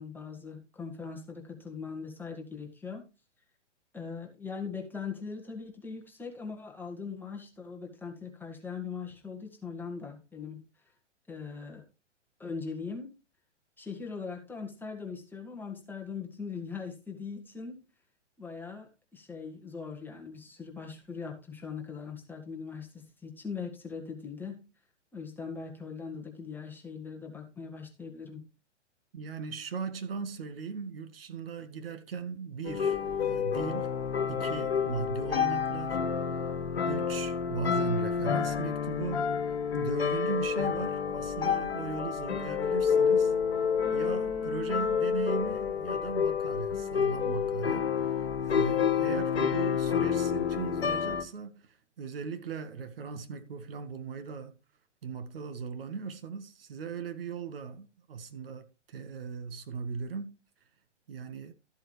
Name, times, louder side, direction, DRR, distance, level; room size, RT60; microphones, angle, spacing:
voice 1, 0.0-3.1 3.9-10.6 11.3-11.8 12.4-13.1 13.8-17.8 18.4-24.7 25.1-28.4, left 5 dB, 5° left, 1.8 m, -40 dB
voice 2, 29.1-34.0 34.3-36.4 36.9-43.3 43.9-54.5 55.0-60.3 61.1-61.5, right 5 dB, 50° right, 1.5 m, -38 dB
sound 1, 32.6-51.2, left 7 dB, 55° left, 1.7 m, -29 dB
13.5 x 7.8 x 3.2 m
figure-of-eight pair, 120°, 36 cm